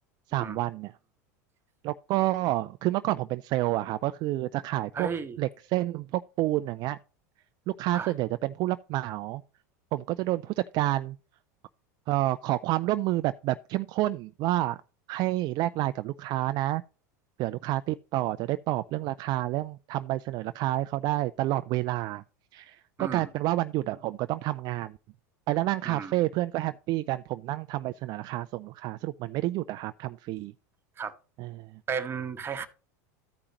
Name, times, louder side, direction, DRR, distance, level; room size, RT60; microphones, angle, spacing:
voice 1, 0.3-0.9 1.8-5.1 5.4-7.0 7.8-9.4 9.9-11.2 12.1-14.8 15.1-16.8 17.4-22.2 22.5-25.0 25.5-30.5 31.4-31.7, right 16 dB, 50° right, 0.4 m, -29 dB
voice 2, 4.9-5.4 7.9-8.1 23.0-23.3 25.8-26.1 31.0-31.1 31.9-32.7, right 6 dB, 25° right, 1.2 m, -34 dB
14.5 x 4.9 x 2.9 m
hypercardioid pair, 105°, 9 cm